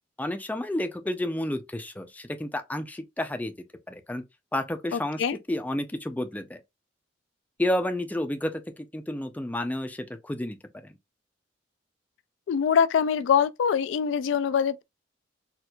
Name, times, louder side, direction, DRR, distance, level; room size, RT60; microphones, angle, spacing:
voice 1, 0.2-3.5 3.9-4.2 4.5-6.6 7.6-10.6 10.8-10.9, left 1 dB, 10° left, 0.4 m, -31 dB
voice 2, 4.9-5.4 12.5-14.8, left 7 dB, 75° left, 0.3 m, -24 dB
4.3 x 2.4 x 2.3 m
head